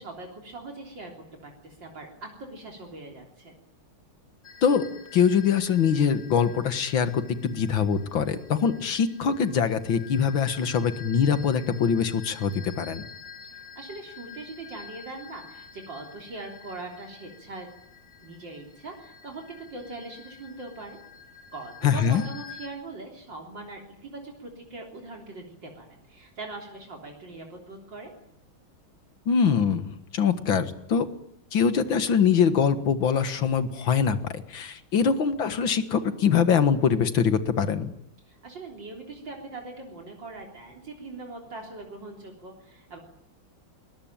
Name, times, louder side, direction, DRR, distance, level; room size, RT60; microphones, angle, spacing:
voice 1, 0.0-3.6 13.5-17.7 18.2-21.0 21.5-28.1 38.3-43.0, right 2 dB, 65° right, 1 dB, 4.2 m, -41 dB
sound 1, 4.4-22.7, left 7 dB, 15° left, 4.0 m, -48 dB
voice 2, 5.1-13.1 21.8-22.2 29.3-31.1 31.5-37.9, left 7 dB, 70° left, 10 dB, 2.4 m, -23 dB
22.5 x 21.0 x 9.0 m, 0.74 s
omnidirectional pair, 2.2 m